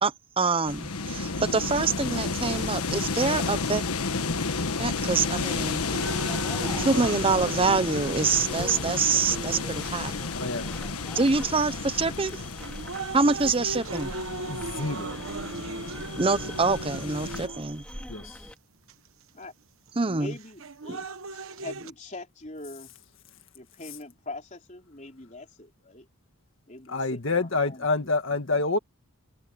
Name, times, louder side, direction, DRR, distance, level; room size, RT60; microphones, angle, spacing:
voice 1, 0.0-3.8 4.8-5.8 6.8-10.2 11.1-12.4 13.1-14.1 16.2-17.8 20.0-20.3, right 4 dB, 25° right, 0.6 m, -25 dB
sound 1, 0.7-17.5, left 4 dB, 90° left, 1.4 m, -32 dB
sound 2, 4.7-18.5, equal, 5° left, 4.4 m, -44 dB
sound 3, 5.9-9.9 10.7-10.8 11.6-11.9 12.4-17.9 18.9-19.0 20.4-21.9, right 3 dB, 65° right, 1.2 m, -37 dB
voice 2, 10.3-10.7 14.5-15.1 18.1-18.4 26.9-28.8, left 3 dB, 60° left, 1.9 m, -27 dB
voice 3, 20.1-21.0 21.3-22.9 23.5-26.1 26.7-28.1, left 2 dB, 35° left, 4.0 m, -42 dB
head